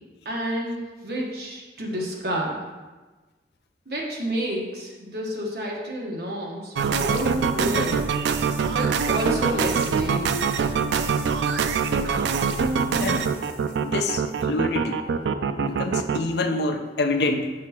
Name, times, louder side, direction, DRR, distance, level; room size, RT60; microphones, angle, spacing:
voice 1, 0.2-2.6 3.9-8.0 8.7-10.4, equal, 60° right, -2 dB, 1.2 m, -30 dB
sound 1, 6.8-16.2, right 5 dB, 80° right, 0.3 m, -24 dB
voice 2, 13.8-15.0 15.6-17.5, left 2 dB, 70° left, 5 dB, 0.5 m, -26 dB
6.2 x 5.9 x 2.9 m, 1.3 s
head